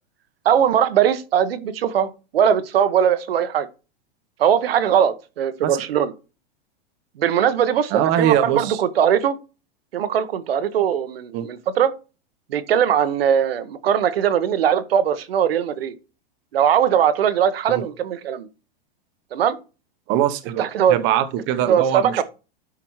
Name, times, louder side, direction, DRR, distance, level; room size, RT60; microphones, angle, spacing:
voice 1, 0.4-3.7 4.4-6.1 7.2-9.4 9.9-11.9 12.5-15.9 16.5-18.5 19.3-19.6 20.6-21.0 21.7-22.2, right 9 dB, 85° right, 1.1 m, -20 dB
voice 2, 7.9-8.8 11.3-11.5 17.7-17.8 20.1-22.2, right 11 dB, 40° right, 1.0 m, -22 dB
12.0 x 6.0 x 3.1 m
hypercardioid pair, 130°, 29 cm